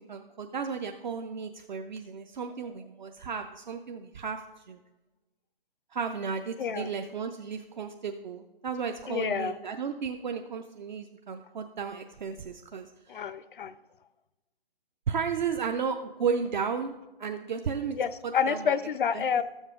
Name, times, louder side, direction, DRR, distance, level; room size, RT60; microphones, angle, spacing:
voice 1, 0.0-4.8 5.9-13.2 15.1-16.9 17.2-18.0 18.2-18.7 19.1-19.2, right 6 dB, 50° right, 6 dB, 0.5 m, -34 dB
voice 2, 6.6-6.9 9.1-9.6 13.1-13.7 18.0-19.4, left 7 dB, 60° left, 15 dB, 0.4 m, -29 dB
12.5 x 7.2 x 3.6 m, 1.1 s
hypercardioid pair, 160°, 29 cm